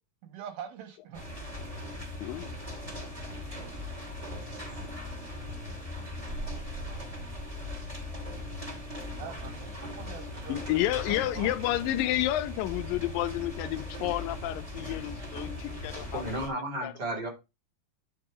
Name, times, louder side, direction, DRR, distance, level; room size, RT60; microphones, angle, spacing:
voice 1, 0.2-1.3 9.2-11.5, right 8 dB, 85° right, 3.6 m, -43 dB
sound 1, 1.1-16.5, left 1 dB, 10° right, 1.9 m, -39 dB
voice 2, 2.2-2.5 10.5-16.5 16.8-16.9, left 14 dB, 80° left, 2.1 m, -30 dB
voice 3, 16.1-17.3, right 1 dB, 30° right, 2.9 m, -33 dB
10.0 x 3.9 x 4.7 m
omnidirectional pair, 4.1 m